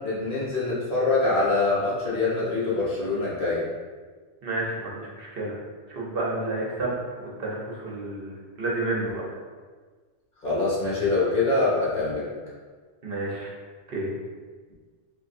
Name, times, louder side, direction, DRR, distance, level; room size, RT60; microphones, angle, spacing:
voice 1, 0.0-3.6 10.4-12.3, left 3 dB, 45° left, -8 dB, 1.1 m, -24 dB
voice 2, 4.4-5.6 6.0-6.9 7.4-7.6 7.8-8.3 8.6-9.2 13.0-13.5 13.9-14.1, right 2 dB, 55° right, -4 dB, 0.9 m, -30 dB
3.8 x 2.5 x 2.5 m, 1.5 s
omnidirectional pair, 1.2 m